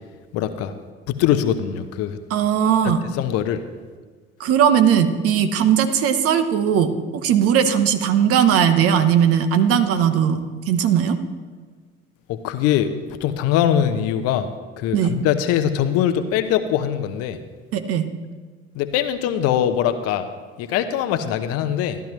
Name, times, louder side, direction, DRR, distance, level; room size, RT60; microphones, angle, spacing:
voice 1, 0.3-0.7 1.1-2.2 3.1-3.6 12.3-14.5 14.8-17.4 18.7-20.3 20.6-22.0, left 10 dB, 55° left, 10 dB, 0.8 m, -22 dB
voice 2, 2.3-3.0 4.4-11.2 14.9-15.1 17.7-18.1, right 8 dB, 50° right, 9 dB, 1.0 m, -18 dB
14.0 x 11.5 x 3.1 m, 1.4 s
figure-of-eight pair, 65°, 30 cm